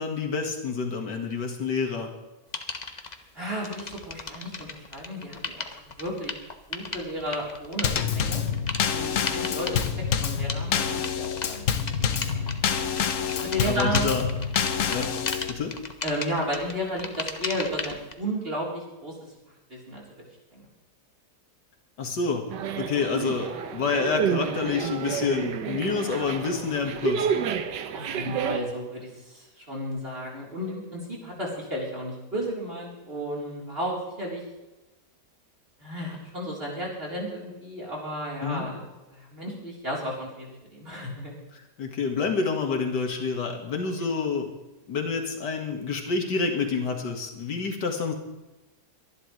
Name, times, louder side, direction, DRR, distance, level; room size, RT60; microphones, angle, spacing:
voice 1, 0.0-2.1 13.3-14.3 14.9-15.1 15.5-15.8 22.0-22.5 22.8-27.3 38.4-38.7 41.8-44.5 44.9-48.1, left 5 dB, 80° left, 2 dB, 2.3 m, -28 dB
sound 1, 2.5-3.2 3.6-18.1, left 4 dB, 30° left, 0.9 m, -36 dB
voice 2, 3.3-6.3 6.7-8.4 8.8-9.8 10.2-11.8 12.1-12.6 13.4-14.5 16.0-19.1 19.7-20.0 20.5-20.7 27.9-34.4 35.8-41.3, equal, 35° right, -4 dB, 4.0 m, -33 dB
Drum kit / Snare drum / Bass drum, 7.8-15.5, left 7 dB, 55° left, 1.1 m, -27 dB
sound 2, 22.5-28.6, right 7 dB, 85° right, 1.6 m, -29 dB
23.5 x 11.0 x 3.2 m, 1.0 s
omnidirectional pair, 1.8 m